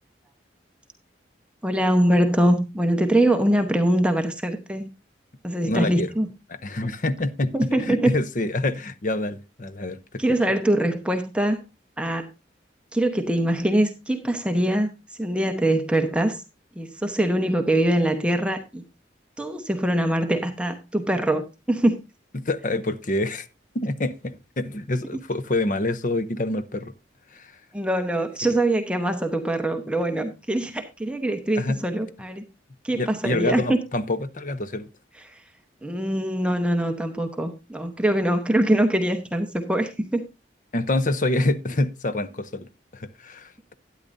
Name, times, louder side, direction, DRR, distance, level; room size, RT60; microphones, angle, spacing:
voice 1, 1.6-4.9 5.4-6.3 7.5-8.1 10.2-11.6 12.0-12.3 12.9-14.9 15.2-16.4 16.8-18.8 19.4-21.9 27.7-32.5 32.8-33.8 35.3-35.4 35.8-40.2, right 1 dB, 5° right, 1.0 m, -23 dB
voice 2, 5.6-6.1 6.6-10.2 22.3-23.5 23.7-26.9 27.3-27.5 28.4-28.5 31.6-31.8 32.9-34.9 40.7-43.7, left 2 dB, 45° left, 0.7 m, -26 dB
12.0 x 9.7 x 2.6 m
head